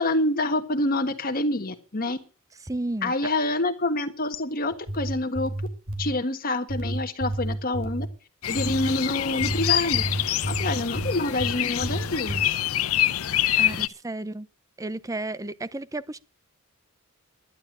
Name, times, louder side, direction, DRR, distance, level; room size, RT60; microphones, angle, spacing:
voice 1, 0.0-2.2 3.0-5.5 6.0-8.1 8.5-10.0 10.5-12.6, left 2 dB, 40° left, 1.6 m, -27 dB
voice 2, 2.6-3.1 13.6-14.5 14.8-16.2, right 2 dB, 15° right, 0.6 m, -32 dB
sound 1, 4.7-6.1 6.7-8.1 8.6-8.9 9.4-11.5 11.8-12.4, right 1 dB, 70° right, 2.9 m, -30 dB
sound 2, 8.4-13.9, left 12 dB, 75° left, 0.6 m, -26 dB
11.0 x 11.0 x 7.4 m
head